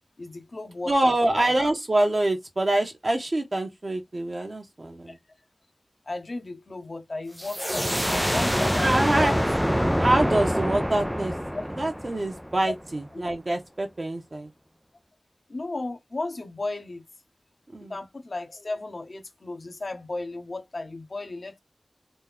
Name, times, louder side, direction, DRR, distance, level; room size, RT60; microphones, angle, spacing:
voice 1, 0.2-1.5 5.1-5.2 6.1-9.4 12.6-12.7 13.1-13.2 15.5-17.0 17.8-21.6, left 2 dB, 70° left, 1.0 m, -35 dB
voice 2, 0.9-5.2 8.8-9.3 10.0-11.3 11.8-14.5 17.7-17.9, right 1 dB, 60° right, 1.5 m, -25 dB
sound 1, 7.4-12.9, equal, ahead, 0.3 m, -26 dB
4.3 x 2.7 x 3.6 m
wide cardioid pair, 40°, 0 cm